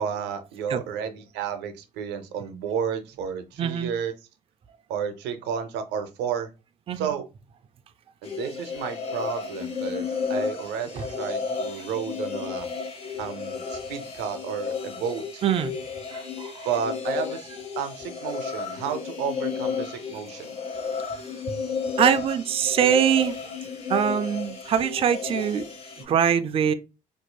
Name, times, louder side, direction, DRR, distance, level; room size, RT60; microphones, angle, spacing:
voice 1, 0.0-4.1 4.9-6.5 7.0-7.3 8.2-12.7 13.2-15.4 16.6-17.5 17.8-20.6, right 7 dB, 85° right, 0.7 m, -31 dB
voice 2, 3.6-3.9 6.9-7.1 11.0-11.1 15.4-15.7 16.1-16.7 22.0-23.4 23.9-25.6 26.1-26.7, right 8 dB, 35° right, 0.4 m, -23 dB
sound 1, 8.2-26.0, left 5 dB, 35° left, 0.9 m, -33 dB
4.4 x 2.6 x 2.2 m
cardioid pair, 110°, 17 cm